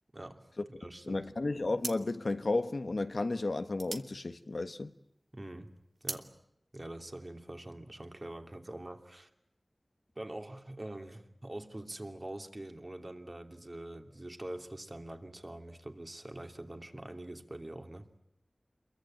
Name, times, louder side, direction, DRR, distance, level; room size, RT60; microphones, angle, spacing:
voice 1, 0.1-0.5 0.8-1.3 5.3-6.4 6.7-9.3 10.1-18.1, right 1 dB, 40° right, 2.8 m, -44 dB
voice 2, 1.1-4.9, left 2 dB, 70° left, 1.4 m, -33 dB
sound 1, 1.1-1.3 1.8-5.1 5.5-6.3, right 2 dB, 75° right, 1.8 m, -43 dB
28.0 x 22.5 x 9.0 m
wide cardioid pair, 50°, 0 cm